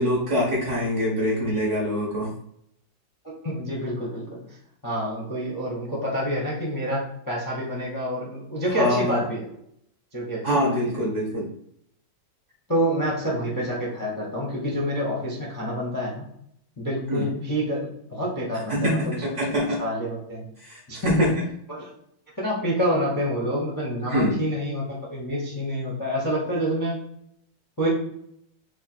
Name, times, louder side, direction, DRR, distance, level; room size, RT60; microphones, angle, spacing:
voice 1, 0.0-2.3 8.7-9.2 10.4-11.5 17.1-17.3 18.7-19.8 20.6-21.4 24.1-24.4, equal, 55° right, -3 dB, 0.9 m, -24 dB
voice 2, 3.4-4.4 4.8-9.4 10.1-11.0 12.7-16.2 16.8-19.2 19.6-20.5 20.9-21.1 21.7-21.9 22.4-27.0 27.8-27.9, equal, 25° left, -5 dB, 0.4 m, -27 dB
3.3 x 2.4 x 4.1 m, 0.73 s
omnidirectional pair, 2.1 m